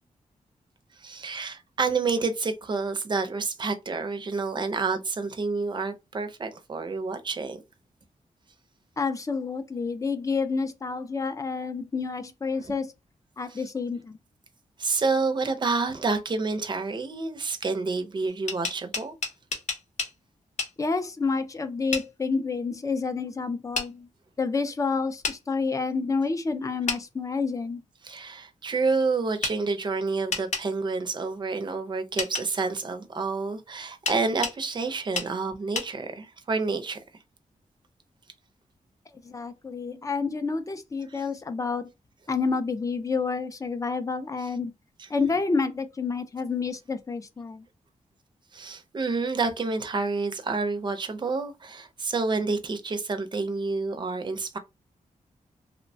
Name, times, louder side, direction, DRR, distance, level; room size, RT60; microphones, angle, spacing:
voice 1, 1.0-7.6 13.5-13.6 14.8-19.1 28.0-37.0 41.1-41.3 48.5-54.6, right 4 dB, 35° right, 0.5 m, -29 dB
voice 2, 9.0-12.9 13.4-14.2 20.8-24.1 24.4-27.8 39.2-41.9 42.3-44.7 45.1-47.7, left 4 dB, 25° left, 0.4 m, -29 dB
sound 1, 18.3-20.1 20.6-20.7 21.9-22.1 23.7-23.9 25.2-25.4 26.9-27.0 29.4-29.6 30.3-30.7 32.2-32.5 34.1-34.6 35.1-35.3 35.7-35.9, left 4 dB, 60° left, 0.7 m, -30 dB
2.9 x 2.1 x 2.6 m
wide cardioid pair, 135°, 14 cm